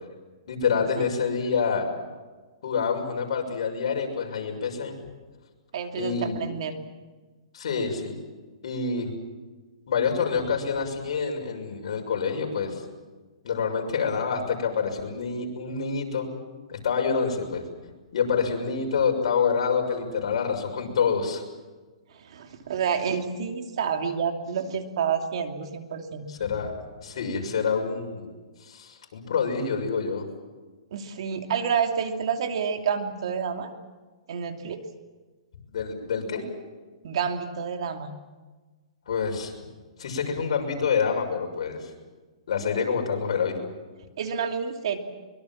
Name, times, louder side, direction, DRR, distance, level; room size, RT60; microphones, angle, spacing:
voice 1, 0.5-1.9 2.6-5.0 5.9-6.4 7.5-8.2 8.6-9.1 9.9-12.8 13.4-16.3 16.7-17.6 18.1-21.4 26.3-26.7 27.0-28.3 28.6-30.2 35.7-36.4 39.1-39.5 40.0-41.9 42.5-43.5, left 5 dB, 65° left, 2 dB, 6.3 m, -27 dB
voice 2, 5.7-6.7 22.1-26.3 30.9-33.7 34.3-34.9 37.0-38.1 44.2-45.0, right 7 dB, 60° right, 5 dB, 2.8 m, -29 dB
24.0 x 22.5 x 7.4 m, 1.3 s
hypercardioid pair, 155°, 3 cm